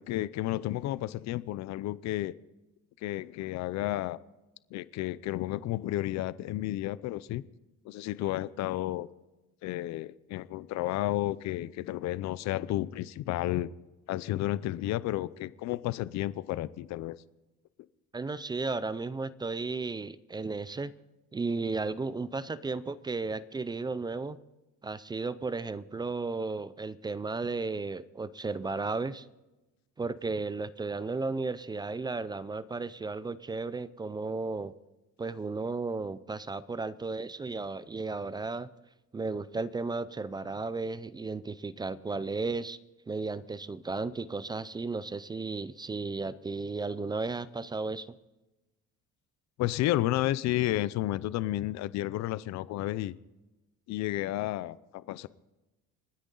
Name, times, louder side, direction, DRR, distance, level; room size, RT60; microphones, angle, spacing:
voice 1, 0.0-2.3 3.0-4.2 4.7-7.4 7.8-9.1 9.6-13.7 14.1-17.2 49.6-53.1 53.9-55.3, left 15 dB, 60° left, 17 dB, 0.6 m, -32 dB
voice 2, 18.1-20.9 21.3-24.4 24.8-29.3 30.0-34.7 35.2-38.7 39.1-42.8 43.1-48.2, right 3 dB, 15° right, 16 dB, 0.4 m, -34 dB
28.5 x 10.0 x 3.9 m, 1.1 s
cardioid pair, 160°, 31 cm